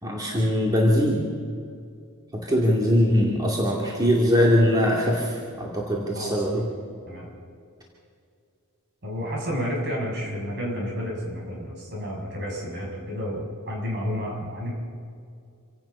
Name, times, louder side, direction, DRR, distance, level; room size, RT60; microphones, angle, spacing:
voice 1, 0.0-1.3 2.5-6.7, equal, 20° right, -3 dB, 2.5 m, -21 dB
voice 2, 9.0-14.7, equal, 50° right, -2 dB, 6.8 m, -31 dB
27.5 x 17.0 x 5.5 m, 2.4 s
head